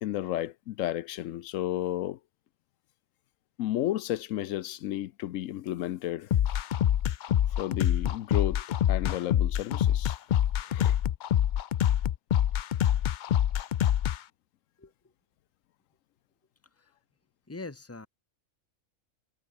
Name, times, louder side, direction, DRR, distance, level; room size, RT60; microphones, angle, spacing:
voice 1, 0.0-2.2 3.6-6.4 7.5-10.2 10.7-11.0, left 13 dB, 85° left, 1.0 m, -33 dB
sound 1, 6.3-14.2, left 11 dB, 70° left, 0.4 m, -25 dB
voice 2, 17.5-18.1, left 3 dB, 10° left, 1.2 m, -41 dB
omnidirectional pair, 1.3 m